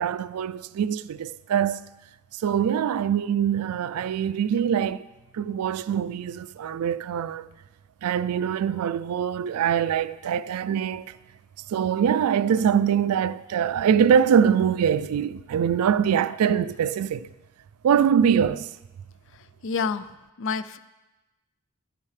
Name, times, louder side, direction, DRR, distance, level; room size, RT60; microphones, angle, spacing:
voice 1, 0.0-1.8 2.4-5.1 5.3-7.5 8.0-11.1 11.7-17.3 17.8-18.7, right 8 dB, 85° right, 0.3 m, -23 dB
voice 2, 19.3-20.8, left 5 dB, 60° left, 0.4 m, -30 dB
12.0 x 8.6 x 3.3 m
head